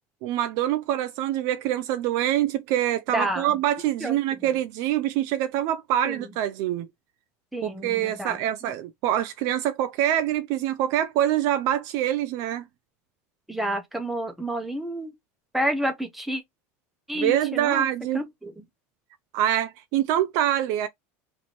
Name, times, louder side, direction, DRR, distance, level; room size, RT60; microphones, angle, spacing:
voice 1, 0.2-6.9 7.6-12.7 17.1-18.2 19.3-20.9, right 12 dB, 50° right, 0.4 m, -25 dB
voice 2, 3.1-3.5 4.0-4.5 6.0-6.3 7.5-8.7 13.5-15.1 15.5-16.4 17.1-17.8 18.1-18.6, right 1 dB, ahead, 0.9 m, -30 dB
3.1 x 3.0 x 4.1 m
cardioid pair, 165°, 7 cm